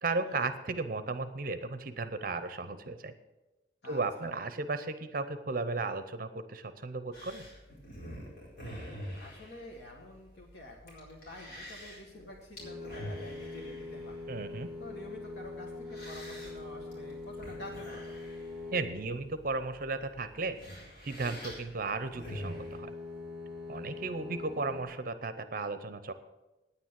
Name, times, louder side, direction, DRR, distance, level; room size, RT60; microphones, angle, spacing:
voice 1, 0.0-3.1 3.9-7.4 14.3-14.7 18.7-20.6 21.0-22.9 23.7-26.1, right 3 dB, 50° right, 11 dB, 0.7 m, -35 dB
voice 2, 3.8-4.3 9.1-14.2 14.8-18.1, left 1 dB, 70° left, -2 dB, 1.8 m, -49 dB
sound 1, 7.1-22.8, equal, 55° left, 4.6 m, -47 dB
sound 2, 12.6-19.4 22.1-24.8, left 3 dB, 5° right, 1.6 m, -43 dB
9.7 x 9.0 x 7.5 m, 1.1 s
head